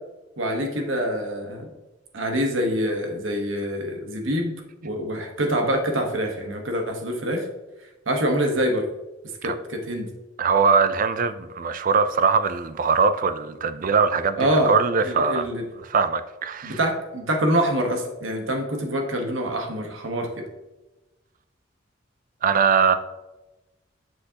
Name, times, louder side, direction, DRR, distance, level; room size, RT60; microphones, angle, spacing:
voice 1, 0.4-1.7 2.1-7.4 8.1-8.9 9.4-10.1 14.4-14.8 15.0-15.6 16.6-20.4, equal, 85° right, 1.3 m, -25 dB
voice 2, 10.4-15.5 15.9-16.8 22.4-22.9, right 5 dB, 45° right, 0.4 m, -21 dB
7.6 x 6.2 x 2.9 m
head